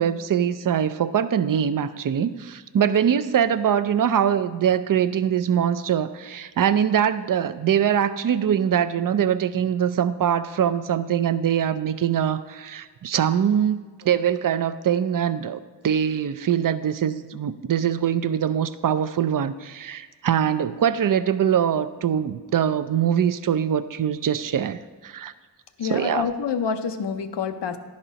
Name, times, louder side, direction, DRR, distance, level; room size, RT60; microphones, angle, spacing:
voice 1, 0.0-25.3 25.8-26.3, right 9 dB, 55° right, 13 dB, 0.4 m, -23 dB
voice 2, 25.8-27.8, left 6 dB, 75° left, 8 dB, 0.6 m, -27 dB
11.0 x 4.2 x 5.1 m, 1.4 s
wide cardioid pair, 65°, 42 cm